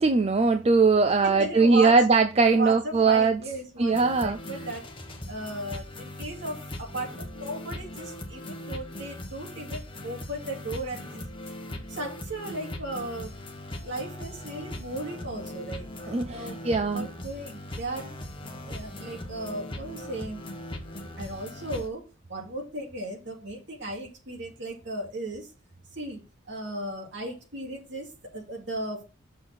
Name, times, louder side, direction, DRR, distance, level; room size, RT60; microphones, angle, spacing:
voice 1, 0.0-3.4 3.8-4.4 16.1-17.1, right 4 dB, 30° right, 0.4 m, -21 dB
voice 2, 1.4-2.0 2.5-4.9 5.3-11.3 11.9-13.3 13.7-15.9 16.3-18.1 18.4-20.4 21.2-22.0 22.3-25.5 25.9-26.2 26.5-29.0, right 1 dB, 60° right, 2.6 m, -36 dB
sound 1, 3.9-21.9, left 1 dB, 25° left, 1.1 m, -39 dB
6.5 x 6.3 x 4.3 m
head